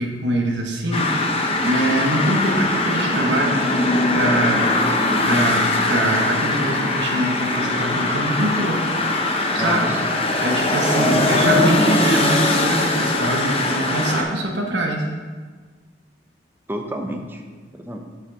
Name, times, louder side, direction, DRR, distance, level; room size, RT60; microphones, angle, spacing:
voice 1, 0.0-4.6 5.2-5.6 5.9-8.8 9.5-9.9 10.4-15.1, right 1 dB, 85° right, 1 dB, 1.2 m, -23 dB
sound 1, 0.9-14.2, left 2 dB, 35° left, 0.8 m, -21 dB
voice 2, 9.5-10.0 11.0-11.4 16.7-17.4 17.7-18.0, right 1 dB, 10° right, 3 dB, 0.6 m, -30 dB
7.4 x 5.9 x 3.9 m, 1.4 s
head